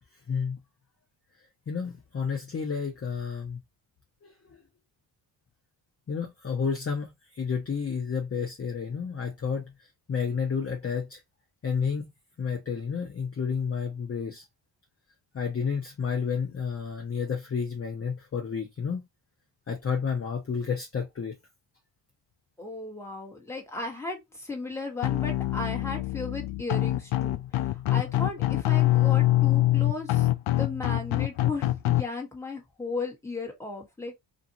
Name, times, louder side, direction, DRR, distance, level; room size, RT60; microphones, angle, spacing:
voice 1, 0.3-0.6 1.7-3.6 4.2-4.6 6.1-11.2 11.6-12.1 12.4-14.4 15.3-19.0 19.7-21.3, left 6 dB, 30° left, 0.7 m, -31 dB
voice 2, 22.6-30.3 30.6-34.2, left 3 dB, 5° left, 1.4 m, -36 dB
sound 1, 25.0-32.0, left 15 dB, 70° left, 0.6 m, -24 dB
2.6 x 2.5 x 2.8 m
cardioid pair, 65°, 50 cm